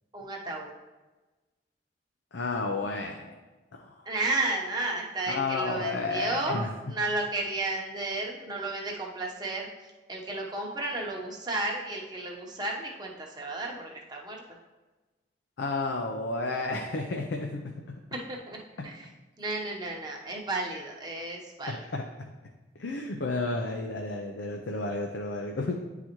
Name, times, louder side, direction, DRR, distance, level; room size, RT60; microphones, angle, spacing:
voice 1, 0.1-0.7 4.0-9.7 10.1-14.4 18.1-19.1 19.4-21.8, right 2 dB, 25° right, -2 dB, 0.9 m, -33 dB
voice 2, 2.3-3.3 3.7-4.1 5.3-6.7 15.6-18.0 18.8-18.9 21.7-22.3 22.8-25.8, left 3 dB, 75° left, 2 dB, 0.5 m, -32 dB
9.8 x 4.0 x 3.0 m, 1.2 s
head